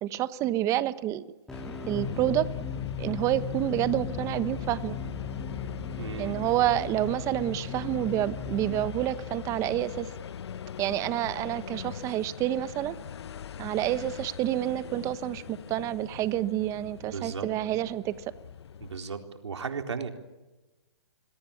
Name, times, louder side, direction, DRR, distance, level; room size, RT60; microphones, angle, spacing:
voice 1, 0.0-1.2 1.9-2.5 3.0-5.0 6.2-10.1 10.8-12.9 13.6-18.1, right 13 dB, 20° right, 14 dB, 1.1 m, -28 dB
sound 1, 1.5-19.0, left 8 dB, 70° left, 0.9 m, -42 dB
sound 2, 1.5-10.2, left 6 dB, 5° left, 2.2 m, -37 dB
voice 2, 6.0-6.4 17.0-17.5 18.8-20.1, right 5 dB, 85° right, 5 dB, 4.0 m, -35 dB
26.5 x 22.0 x 8.6 m, 1.1 s
hypercardioid pair, 150°, 14 cm